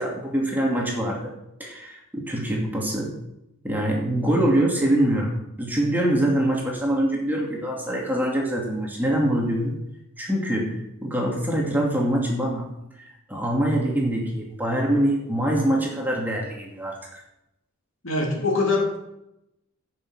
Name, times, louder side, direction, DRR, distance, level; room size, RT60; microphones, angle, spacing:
voice 1, 0.0-1.3 1.6-3.1 3.6-9.8 10.2-12.7 13.0-17.2, right 1 dB, 10° right, -2 dB, 2.4 m, -24 dB
voice 2, 18.0-19.0, left 3 dB, 60° left, -1 dB, 3.2 m, -23 dB
16.0 x 6.7 x 4.8 m, 0.85 s
head